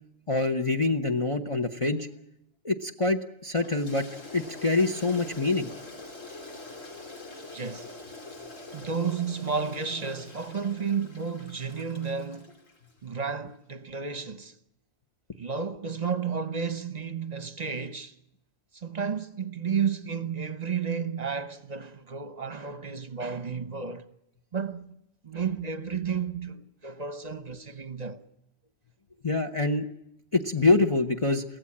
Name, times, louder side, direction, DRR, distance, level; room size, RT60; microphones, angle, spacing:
voice 1, 0.3-2.1 2.6-4.0 4.3-5.7 29.2-29.9 30.3-31.4, left 3 dB, 30° left, 0.9 m, -25 dB
Toilet flush, 3.6-13.0, left 2 dB, 80° left, 3.4 m, -45 dB
voice 2, 7.5-7.9 8.7-12.6 13.0-14.6 15.4-18.1 18.7-24.0 24.5-25.0 25.2-28.2, right 6 dB, 35° right, 1.0 m, -32 dB
23.0 x 16.5 x 8.6 m
omnidirectional pair, 1.3 m